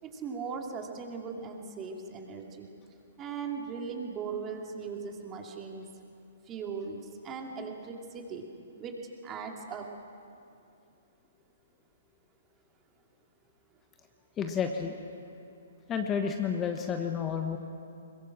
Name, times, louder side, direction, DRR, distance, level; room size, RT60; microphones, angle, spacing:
voice 1, 0.0-2.7 3.2-5.9 6.5-8.5 8.8-9.9, right 5 dB, 25° right, 2 dB, 2.5 m, -39 dB
voice 2, 14.4-15.0 15.9-17.6, left 7 dB, 20° left, 5 dB, 1.2 m, -30 dB
22.5 x 21.5 x 6.2 m, 2.5 s
figure-of-eight pair, 125°, 0 cm